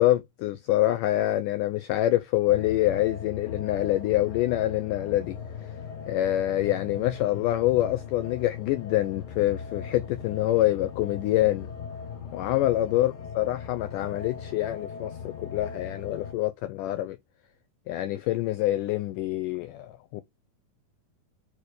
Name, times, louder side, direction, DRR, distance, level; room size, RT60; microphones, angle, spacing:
voice 1, 0.0-5.4 6.1-11.7 12.3-17.2 17.9-20.2, left 15 dB, 85° left, 1.8 m, -26 dB
sound 1, 2.5-16.3, left 6 dB, 65° left, 3.9 m, -39 dB
7.0 x 4.8 x 6.6 m
omnidirectional pair, 4.4 m